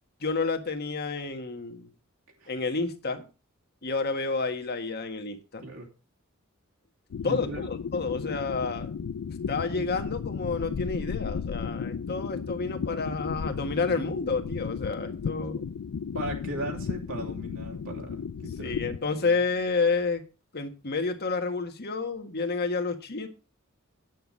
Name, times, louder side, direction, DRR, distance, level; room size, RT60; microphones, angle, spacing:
voice 1, 0.2-1.9 2.5-3.3 3.8-5.6 7.2-8.9 9.5-15.6 18.6-20.2 20.5-23.3, left 4 dB, 50° left, 6 dB, 1.6 m, -30 dB
sound 1, 7.1-19.0, left 6 dB, 90° left, 0.4 m, -34 dB
voice 2, 7.2-7.7 16.1-19.3, right 1 dB, 65° right, 0 dB, 3.2 m, -38 dB
9.4 x 7.9 x 5.3 m, 0.32 s
head